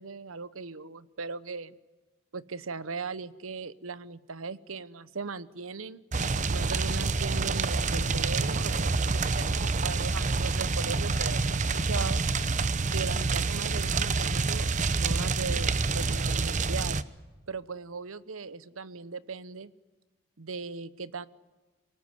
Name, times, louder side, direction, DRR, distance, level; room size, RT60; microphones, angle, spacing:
voice 1, 0.0-1.7 2.3-6.1 6.5-12.2 12.9-17.0 17.5-19.7 20.4-21.3, right 4 dB, 90° right, 17 dB, 1.0 m, -38 dB
sound 1, 6.1-17.0, right 4 dB, 35° right, 0.8 m, -27 dB
25.0 x 19.0 x 9.6 m, 1.2 s
head